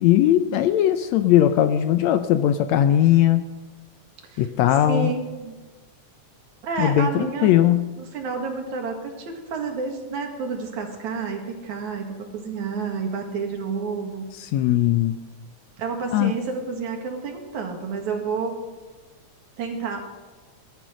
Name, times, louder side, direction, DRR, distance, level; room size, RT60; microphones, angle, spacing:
voice 1, 0.0-3.4 4.4-5.1 6.8-7.9 14.4-15.2 16.1-16.3, left 12 dB, 75° left, 10 dB, 1.7 m, -19 dB
voice 2, 4.8-5.5 6.6-7.6 8.0-14.3 15.8-18.6 19.6-20.0, right 5 dB, 70° right, 3 dB, 3.3 m, -30 dB
19.0 x 12.0 x 6.3 m, 1.3 s
omnidirectional pair, 3.5 m